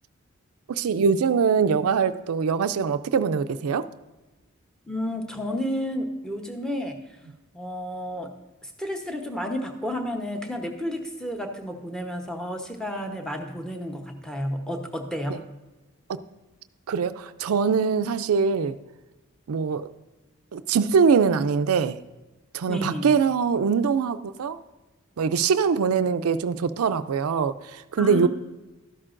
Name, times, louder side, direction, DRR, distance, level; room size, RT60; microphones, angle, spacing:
voice 1, 0.7-3.9 15.3-15.4 16.1-16.2 16.9-18.8 19.5-19.9 20.5-22.0 22.5-24.6 25.2-28.3, right 6 dB, 85° right, 0.4 m, -23 dB
voice 2, 4.9-7.0 7.5-8.3 8.6-15.4 22.6-23.1 28.0-28.3, equal, 5° left, 0.9 m, -31 dB
12.5 x 11.0 x 2.5 m
head